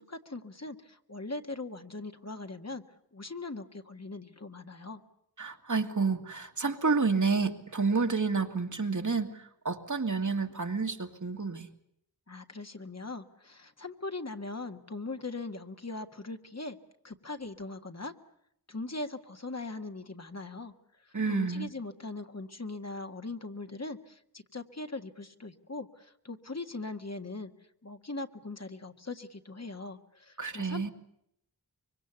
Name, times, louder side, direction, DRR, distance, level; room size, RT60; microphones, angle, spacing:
voice 1, 0.0-2.8 3.1-5.0 12.3-16.8 17.0-18.1 18.7-20.7 21.0-27.5 27.8-30.9, left 3 dB, 45° left, 6 dB, 1.7 m, -40 dB
voice 2, 5.4-11.7 21.1-21.7 30.4-30.9, right 4 dB, 50° right, 5 dB, 2.1 m, -29 dB
25.0 x 24.0 x 8.2 m, 0.73 s
wide cardioid pair, 65°, 37 cm